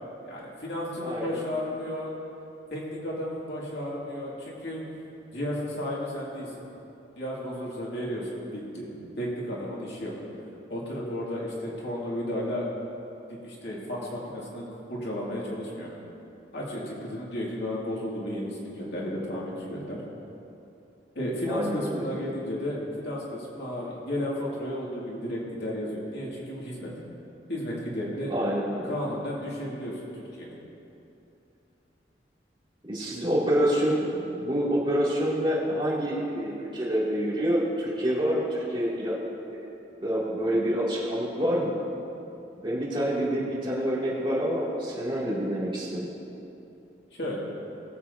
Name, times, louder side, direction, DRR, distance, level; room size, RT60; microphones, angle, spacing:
voice 1, 0.2-2.1 2.7-4.8 5.3-6.5 7.2-8.9 9.2-10.2 10.7-12.7 13.3-15.9 16.5-20.0 21.2-27.0 27.5-28.3 28.8-30.5 47.2-47.4, left 1 dB, 75° left, -5 dB, 2.3 m, -33 dB
voice 2, 1.0-1.4 21.5-22.1 28.3-28.9 32.9-39.2 39.5-39.6 40.0-41.7 42.6-46.1, equal, 30° right, -7 dB, 2.5 m, -27 dB
19.5 x 7.7 x 2.7 m, 2.9 s
head